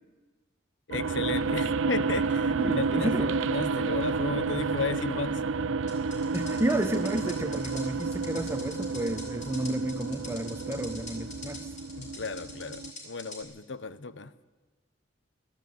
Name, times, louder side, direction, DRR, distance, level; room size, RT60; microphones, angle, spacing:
voice 1, 0.9-5.4 12.0-14.4, left 3 dB, 65° left, 15 dB, 1.0 m, -34 dB
sound 1, 0.9-12.9, right 4 dB, 90° right, 0.6 m, -30 dB
voice 2, 2.6-3.3 6.3-11.7, right 1 dB, 15° right, 9 dB, 0.9 m, -31 dB
sound 2, 5.9-13.4, left 2 dB, 40° left, 7.3 m, -44 dB
20.0 x 14.5 x 9.4 m, 1.3 s
head